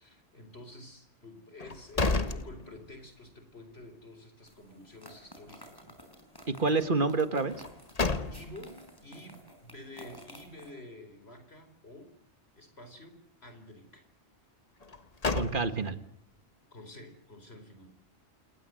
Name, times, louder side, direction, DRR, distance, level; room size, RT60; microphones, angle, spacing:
voice 1, 0.0-6.0 8.3-12.1 12.6-14.1 16.7-17.9, left 1 dB, 70° left, 8 dB, 4.7 m, -49 dB
sound 1, 1.6-3.2 3.6-3.7 7.5-8.8 14.8-16.1, left 3 dB, 35° left, 1.4 m, -32 dB
sound 2, 4.5-10.7, equal, 20° left, 4.9 m, -53 dB
voice 2, 6.5-7.5 15.3-16.0, right 3 dB, 50° right, 11 dB, 1.9 m, -28 dB
29.0 x 19.0 x 7.9 m, 0.66 s
omnidirectional pair, 1.1 m